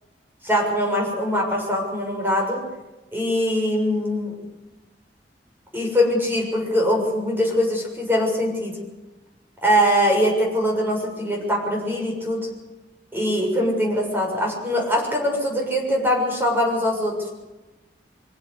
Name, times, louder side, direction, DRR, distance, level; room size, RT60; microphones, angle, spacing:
voice 1, 0.4-2.7 3.1-4.4 5.7-8.8 9.6-12.5 13.1-17.3, equal, 10° right, 0 dB, 6.8 m, -22 dB
25.0 x 16.5 x 8.1 m, 1.1 s
head